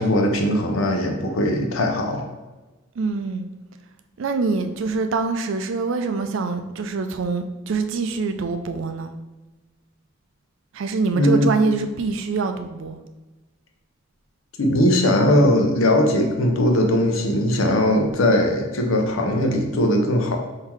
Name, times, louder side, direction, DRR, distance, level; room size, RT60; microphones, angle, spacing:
voice 1, 0.0-2.3 11.1-11.5 14.6-20.4, left 1 dB, 75° left, 3 dB, 0.7 m, -19 dB
voice 2, 3.0-3.5 4.2-9.1 10.7-13.0, right 4 dB, 65° right, 7 dB, 0.4 m, -24 dB
3.8 x 2.8 x 4.4 m, 1.2 s
head